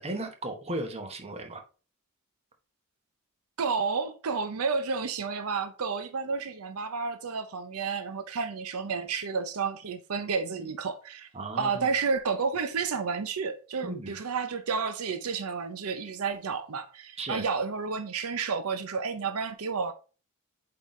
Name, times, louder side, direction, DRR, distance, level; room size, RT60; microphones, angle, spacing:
voice 1, 0.0-1.6 11.3-11.9 13.8-14.2 17.2-17.4, right 2 dB, 30° right, 1.0 m, -35 dB
voice 2, 3.6-11.3 11.6-19.9, right 5 dB, 85° right, 0.7 m, -31 dB
8.2 x 3.9 x 3.1 m
head